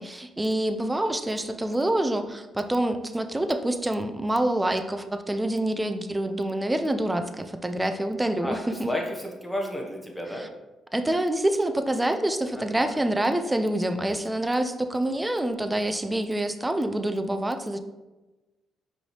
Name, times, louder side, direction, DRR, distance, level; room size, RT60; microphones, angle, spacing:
voice 1, 0.0-8.9 10.3-10.5 10.9-17.8, right 1 dB, 10° right, 8 dB, 0.4 m, -26 dB
voice 2, 8.4-10.4 12.5-13.0, left 1 dB, 5° left, 0 dB, 0.9 m, -32 dB
5.2 x 3.2 x 3.0 m, 1.1 s
cardioid pair, 90°, 0 cm